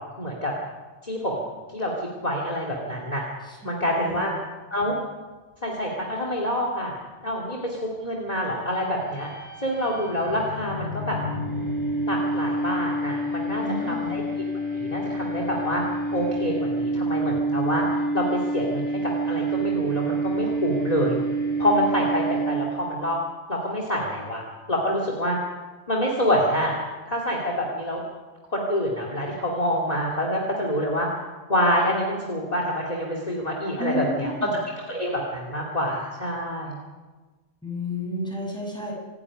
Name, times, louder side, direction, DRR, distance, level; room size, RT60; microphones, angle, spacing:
voice 1, 0.2-0.5 1.0-1.5 1.7-3.2 3.6-4.3 4.7-4.9 5.6-9.3 9.6-11.2 12.1-14.2 14.7-15.8 16.1-21.2 21.6-23.2 23.5-24.4 24.7-25.4 25.9-26.8 27.1-28.0 28.5-31.1 31.5-34.3 34.9-36.7, equal, 30° left, -1 dB, 2.9 m, -26 dB
voice 2, 3.5-4.3 13.6-14.2 33.8-34.6 37.6-38.9, left 1 dB, 5° left, -2 dB, 6.8 m, -32 dB
sound 1, 8.9-22.9, right 2 dB, 25° right, 5.6 m, -28 dB
26.0 x 11.0 x 10.0 m, 1.3 s
omnidirectional pair, 1.3 m